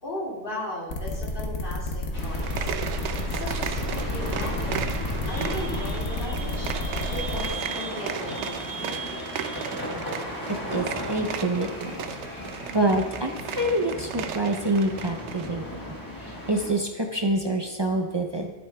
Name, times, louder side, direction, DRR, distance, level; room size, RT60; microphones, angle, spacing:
voice 1, 0.0-2.7 3.0-4.7 5.3-6.7 7.0-9.3, left 1 dB, 45° left, -5 dB, 2.3 m, -37 dB
sound 1, 0.9-7.5, left 3 dB, 85° left, 1.4 m, -31 dB
sound 2, 2.1-16.7, equal, 15° left, 1.3 m, -35 dB
sound 3, 2.3-15.5, right 8 dB, 75° right, 0.8 m, -36 dB
voice 2, 10.5-12.0 12.3-15.7 16.2-18.5, right 1 dB, 40° right, 2 dB, 0.4 m, -27 dB
11.5 x 9.2 x 2.2 m, 1.3 s
omnidirectional pair, 1.2 m